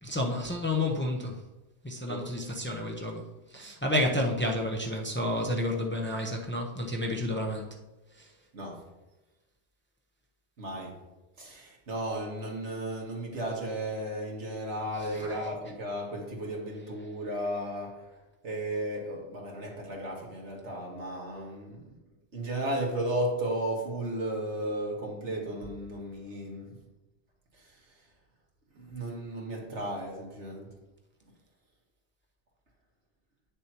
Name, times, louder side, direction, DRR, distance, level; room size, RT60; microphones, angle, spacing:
voice 1, 0.0-1.4 1.8-7.7 8.2-8.3 15.0-15.4, left 1 dB, 10° left, 0 dB, 0.7 m, -31 dB
voice 2, 10.6-11.0 11.4-18.0 18.4-21.8 22.3-26.7 28.8-30.7, right 1 dB, 90° right, -1 dB, 1.9 m, -34 dB
9.3 x 6.7 x 3.0 m, 1.0 s
omnidirectional pair, 1.1 m